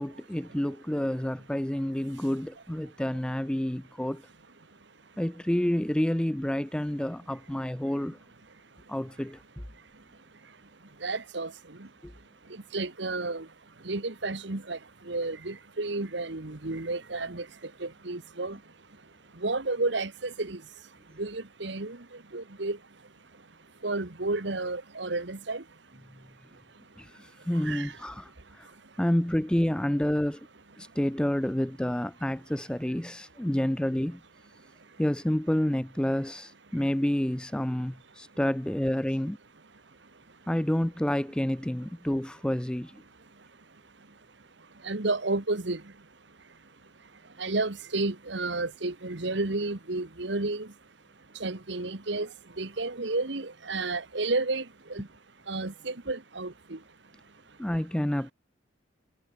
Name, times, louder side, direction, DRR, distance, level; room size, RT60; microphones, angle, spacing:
voice 1, 0.0-4.2 5.2-8.2 8.9-9.6 12.0-12.1 27.0-28.7 29.0-30.5 30.8-34.2 35.0-39.4 40.5-43.0 57.6-58.3, left 1 dB, 5° left, 0.3 m, -29 dB
voice 2, 11.0-11.5 11.8-11.9 12.7-13.4 13.8-14.8 15.1-17.4 17.8-18.6 19.4-20.6 21.2-22.0 22.3-22.8 23.8-25.6 27.6-27.9 44.8-45.8 47.4-50.7 51.4-52.3 52.6-54.6 54.9-55.1 55.5-56.8, right 2 dB, 65° right, 1.5 m, -31 dB
head